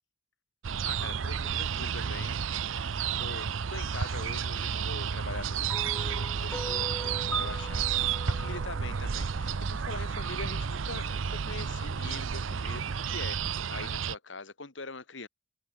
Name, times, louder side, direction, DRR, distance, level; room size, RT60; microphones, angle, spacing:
sound 1, 0.6-14.1, right 7 dB, 85° right, 0.6 m, -31 dB
voice 1, 0.8-2.4 3.2-15.3, left 3 dB, 70° left, 2.1 m, -43 dB
sound 2, 5.7-10.0, left 1 dB, 10° left, 2.6 m, -41 dB
head